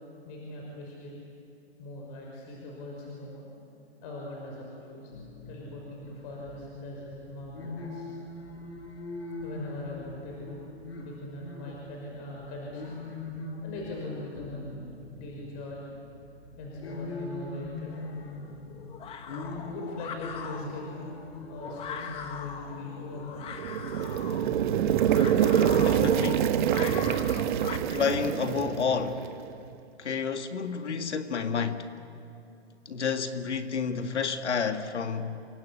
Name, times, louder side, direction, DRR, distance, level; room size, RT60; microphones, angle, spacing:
voice 1, 0.2-1.1 1.8-3.5 4.0-5.1 5.5-8.1 9.4-10.6 11.0-13.0 13.6-14.7 15.2-15.9 16.6-17.9 19.3-20.8 21.5-23.4, left 2 dB, 35° left, 5.7 m, -41 dB
sound 1, 5.1-25.0, left 2 dB, 65° left, 7.0 m, -42 dB
sound 2, 17.9-27.8, left 7 dB, 15° left, 1.4 m, -41 dB
sound 3, 23.4-29.5, right 9 dB, 45° right, 1.3 m, -26 dB
voice 2, 25.8-26.6 27.9-29.2 30.0-31.9 32.9-35.5, left 6 dB, 80° left, 2.0 m, -30 dB
28.5 x 23.5 x 8.6 m
hypercardioid pair, 145°, 34 cm